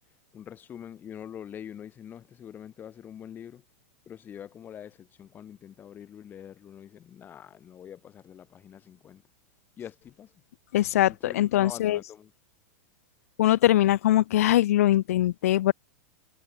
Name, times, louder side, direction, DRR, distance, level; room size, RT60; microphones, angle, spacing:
voice 1, 0.3-3.7 4.1-9.2 9.8-10.3 11.1-12.3, left 9 dB, 25° left, 2.5 m, -44 dB
voice 2, 10.7-12.0 13.4-15.7, left 13 dB, 80° left, 0.5 m, -22 dB
supercardioid pair, 140°, 8 cm